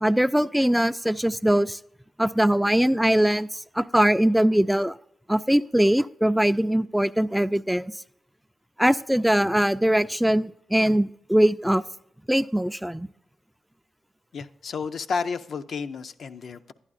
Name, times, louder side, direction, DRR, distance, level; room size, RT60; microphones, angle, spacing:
voice 1, 0.0-1.8 2.2-5.0 5.3-7.9 8.8-11.8 12.3-13.1, right 1 dB, 5° right, 13 dB, 0.3 m, -21 dB
voice 2, 14.3-16.7, left 5 dB, 75° left, 8 dB, 0.4 m, -31 dB
11.5 x 9.7 x 2.5 m, 0.77 s
supercardioid pair, 45°, 0 cm